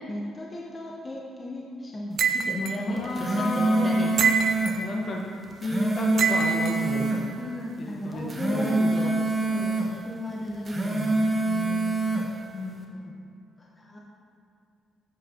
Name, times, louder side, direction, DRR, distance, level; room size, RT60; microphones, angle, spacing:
voice 1, 0.1-4.4 7.4-11.8 12.5-13.2 13.6-14.0, left 1 dB, 30° left, -3 dB, 0.9 m, -35 dB
sound 1, 2.2-2.8 4.2-4.8 6.2-6.8, right 6 dB, 65° right, 0.5 m, -24 dB
voice 2, 2.9-4.0 4.8-5.3 5.6-7.1 7.8-8.3 8.5-8.7, left 2 dB, 60° left, -1 dB, 1.4 m, -31 dB
sound 2, 3.0-4.8 5.4-7.2 8.1-9.9 10.5-12.3, right 2 dB, 30° right, 1.1 m, -25 dB
7.7 x 7.6 x 3.0 m, 2.6 s
cardioid pair, 75°, 0 cm